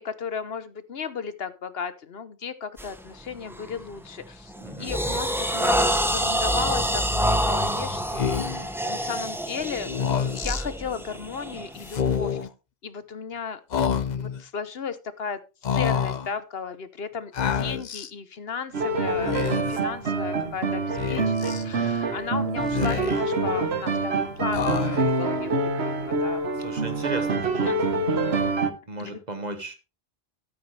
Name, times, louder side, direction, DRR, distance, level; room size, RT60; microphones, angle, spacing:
voice 1, 0.0-4.5 4.8-12.4 12.8-26.5 27.6-27.8 29.0-29.2, left 6 dB, 65° left, 13 dB, 1.2 m, -35 dB
sound 1, 2.8-3.0 3.5-3.8 4.3-12.4, equal, ahead, 1.0 m, -27 dB
voice 2, 4.6-4.9 26.6-28.2 28.9-29.7, right 2 dB, 40° right, 8 dB, 1.6 m, -35 dB
Speech, 8.1-8.7 9.8-10.6 11.8-12.5 13.7-14.4 15.6-16.3 17.3-18.1 19.1-19.8 21.0-21.6 22.6-23.4 24.5-25.2, left 7 dB, 50° left, 0.7 m, -27 dB
sound 2, 18.7-28.7, right 3 dB, 75° right, 1.4 m, -26 dB
13.0 x 9.3 x 3.3 m, 0.29 s
omnidirectional pair, 1.1 m